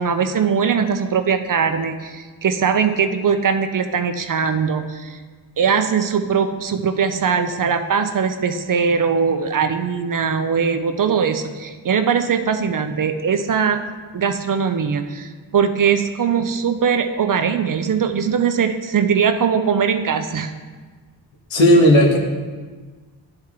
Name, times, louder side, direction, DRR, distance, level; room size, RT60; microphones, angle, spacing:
voice 1, 0.0-5.2 5.6-13.8 14.1-20.5, right 6 dB, 45° right, 8 dB, 0.6 m, -20 dB
voice 2, 21.5-22.2, equal, 75° left, -1 dB, 1.5 m, -12 dB
10.5 x 4.4 x 3.6 m, 1.4 s
cardioid pair, 60°, 46 cm